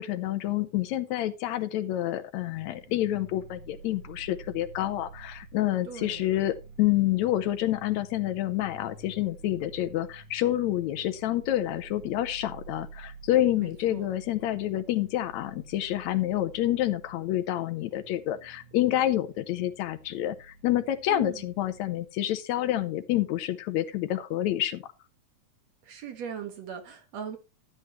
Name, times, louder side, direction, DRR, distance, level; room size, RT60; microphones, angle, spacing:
voice 1, 0.0-24.8, left 13 dB, 75° left, 2.0 m, -28 dB
sound 1, 2.5-22.0, right 4 dB, 90° right, 3.1 m, -50 dB
voice 2, 5.9-6.3 13.6-14.1 21.1-21.4 25.9-27.4, right 7 dB, 65° right, 2.7 m, -39 dB
12.5 x 8.2 x 3.1 m
omnidirectional pair, 3.4 m